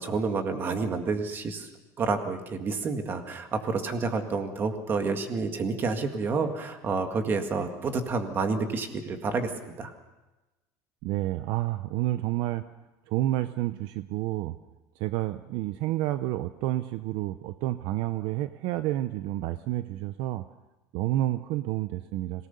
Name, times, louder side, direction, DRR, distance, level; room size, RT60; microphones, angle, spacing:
voice 1, 0.0-1.7 2.0-9.5 9.8-9.9, right 4 dB, 25° right, 6 dB, 1.9 m, -29 dB
voice 2, 11.0-12.6 13.1-14.5 15.0-20.4 20.9-22.5, right 15 dB, 60° right, 12 dB, 0.7 m, -29 dB
26.0 x 18.0 x 6.9 m, 1.1 s
cardioid pair, 170°, 9 cm